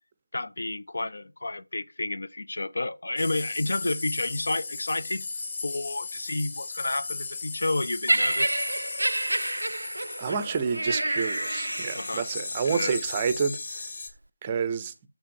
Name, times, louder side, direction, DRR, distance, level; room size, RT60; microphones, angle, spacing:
voice 1, 0.3-5.3 5.6-8.7 11.9-12.3 12.7-13.0, left 2 dB, 60° left, 0.7 m, -30 dB
sound 1, 3.2-14.1, left 4 dB, 30° left, 2.0 m, -37 dB
Laughter, 8.1-12.3 13.1-13.3, right 1 dB, 85° right, 0.4 m, -28 dB
voice 2, 10.2-13.9 14.4-14.9, right 6 dB, 15° right, 0.6 m, -29 dB
6.8 x 5.8 x 7.0 m
figure-of-eight pair, 170°, 0 cm